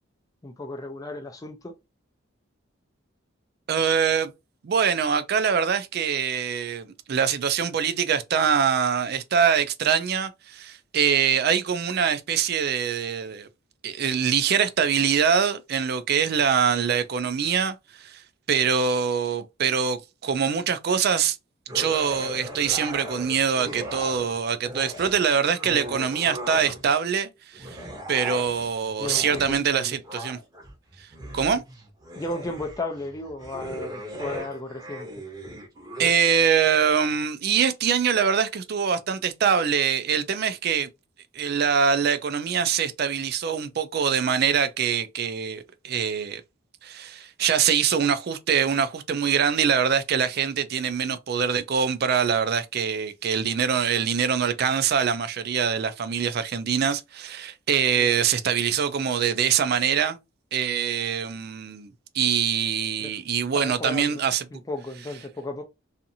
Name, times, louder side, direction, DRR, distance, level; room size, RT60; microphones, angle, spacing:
voice 1, 0.4-1.8 29.0-30.0 31.5-31.6 32.2-35.1 58.0-58.1 63.0-63.1 63.5-65.6, left 2 dB, 15° left, 0.4 m, -34 dB
voice 2, 3.7-4.3 4.6-13.5 13.8-18.2 18.5-21.4 21.7-27.8 28.1-30.4 31.3-31.6 36.0-40.9 41.3-46.4 46.8-60.2 60.5-64.4, right 7 dB, 50° right, 0.4 m, -24 dB
sound 1, 21.7-24.3 24.6-27.0 27.5-36.1, equal, 20° right, 0.7 m, -38 dB
2.7 x 2.5 x 2.6 m
head